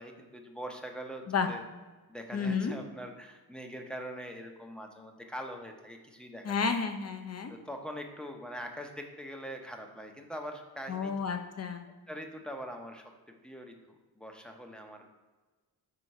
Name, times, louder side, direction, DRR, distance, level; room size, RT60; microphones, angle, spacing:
voice 1, 0.0-1.6 2.1-6.7 7.5-11.1 12.1-13.1 13.4-13.8 14.2-15.1, equal, ahead, 3 dB, 0.7 m, -43 dB
voice 2, 2.3-2.7 6.4-7.5 10.9-11.9, left 5 dB, 40° left, 6 dB, 0.7 m, -31 dB
4.7 x 3.7 x 5.4 m, 1.2 s
cardioid pair, 80°, 39 cm